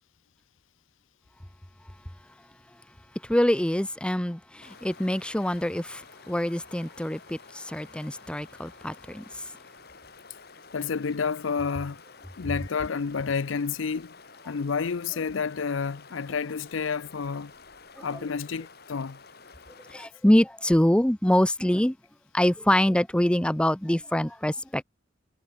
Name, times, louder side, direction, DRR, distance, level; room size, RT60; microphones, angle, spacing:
voice 1, 3.2-9.2 18.0-18.1 19.9-22.0 22.3-24.8, left 1 dB, 5° left, 0.6 m, -25 dB
sound 1, 4.6-20.1, left 4 dB, 55° left, 5.3 m, -51 dB
voice 2, 10.7-12.0 12.4-14.1 14.5-17.5 18.0-19.2, left 5 dB, 85° left, 0.6 m, -30 dB
head